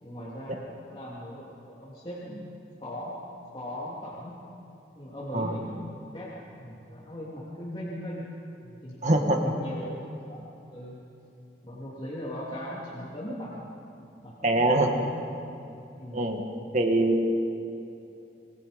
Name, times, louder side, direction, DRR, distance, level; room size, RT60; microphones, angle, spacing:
voice 1, 0.0-2.5 2.8-3.2 3.5-4.4 4.9-8.3 8.6-11.0 11.6-13.7 14.2-15.2 15.6-16.3, equal, 30° left, -8 dB, 3.1 m, -39 dB
voice 2, 9.0-9.4 14.4-14.9 16.1-16.4 16.7-17.2, right 2 dB, 40° right, 3 dB, 1.9 m, -23 dB
27.0 x 20.0 x 5.3 m, 2.8 s
head